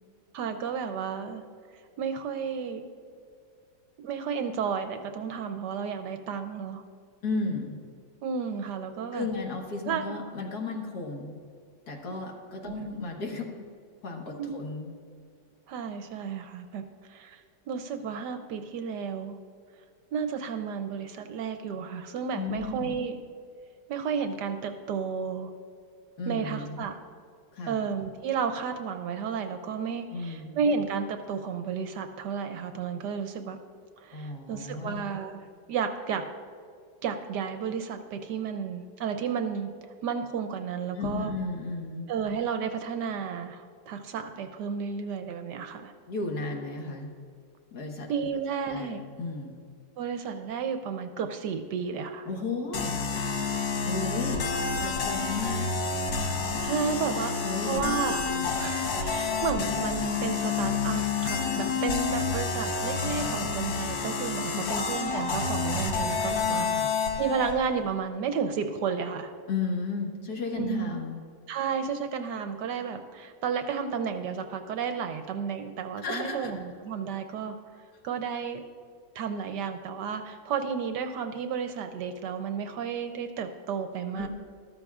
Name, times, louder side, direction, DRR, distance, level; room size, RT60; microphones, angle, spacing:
voice 1, 0.3-1.4 2.0-2.8 4.0-6.8 8.2-9.3 9.8-10.1 12.6-12.7 14.4-14.5 15.7-16.8 17.1-19.4 20.1-23.2 23.9-25.5 26.3-27.0 27.7-33.6 34.0-35.4 35.7-36.3 37.0-39.7 40.0-41.3 42.1-45.9 48.1-49.0 50.0-52.3 56.6-57.4 57.6-58.2 58.6-66.7 67.2-69.3 70.6-70.9 71.5-77.6 78.0-78.6 79.1-84.3, right 6 dB, 70° right, 8 dB, 1.2 m, -32 dB
voice 2, 7.2-7.8 9.1-11.4 11.9-13.7 14.0-14.9 22.3-22.9 26.2-26.8 27.5-27.8 30.1-30.6 34.1-35.1 40.9-42.1 46.1-47.1 47.7-48.1 48.7-48.9 49.2-49.6 52.2-53.0 53.8-54.5 54.8-55.7 57.4-58.0 58.3-58.5 64.5-64.7 66.4-66.9 69.5-71.2 76.0-76.5 84.2-84.3, left 4 dB, 55° left, 1 dB, 1.8 m, -34 dB
sound 1, 52.7-67.5, left 5 dB, 80° left, 1.8 m, -29 dB
13.5 x 13.0 x 2.4 m, 2.2 s
omnidirectional pair, 2.0 m